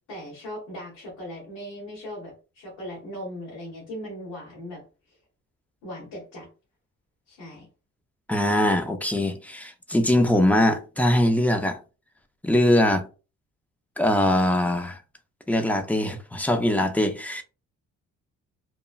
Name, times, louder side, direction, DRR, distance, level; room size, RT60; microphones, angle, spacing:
voice 1, 0.1-4.8 5.8-6.5 7.3-7.7, equal, 90° left, 1.3 m, -38 dB
voice 2, 8.3-11.8 12.4-13.1 14.0-15.0 15.5-17.4, left 1 dB, 5° left, 0.4 m, -22 dB
2.9 x 2.2 x 2.3 m
cardioid pair, 90°, 30 cm